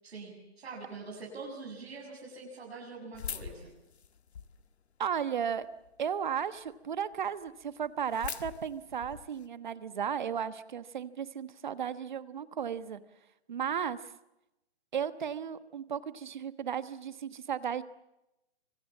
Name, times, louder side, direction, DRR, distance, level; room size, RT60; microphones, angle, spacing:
voice 1, 0.0-3.7, right 4 dB, 70° right, -2 dB, 7.6 m, -44 dB
sound 1, 3.1-4.7 5.2-5.9 6.4-6.5 6.7-6.8 7.1-7.2 7.4-9.5, left 7 dB, 80° left, 1.9 m, -42 dB
voice 2, 5.0-5.7 6.0-13.0 13.5-14.1 14.9-17.8, right 8 dB, 45° right, 13 dB, 1.4 m, -35 dB
27.0 x 25.5 x 7.4 m, 0.91 s
hypercardioid pair, 180°, 32 cm